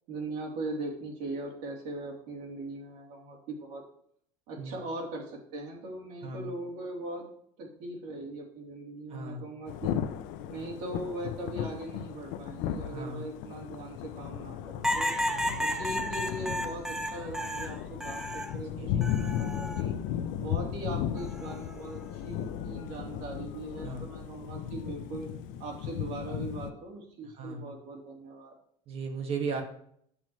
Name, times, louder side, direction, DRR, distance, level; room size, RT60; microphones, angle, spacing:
voice 1, 0.1-3.8 4.5-7.3 7.6-10.0 10.5-15.1 15.6-19.9 20.4-25.3 25.6-28.5, right 2 dB, 75° right, -2 dB, 3.1 m, -40 dB
voice 2, 9.1-9.4 12.9-13.3 15.3-15.7 18.8-19.2 23.8-24.1 27.4-27.7 28.9-29.6, right 4 dB, 45° right, 4 dB, 1.6 m, -37 dB
Thunder / Rain, 9.7-26.7, left 10 dB, 75° left, 0.6 m, -36 dB
sound 1, 14.8-18.5 19.0-19.8 21.2-21.6, equal, 5° right, 0.7 m, -32 dB
8.6 x 7.3 x 3.1 m, 0.65 s
cardioid pair, 135°, 14 cm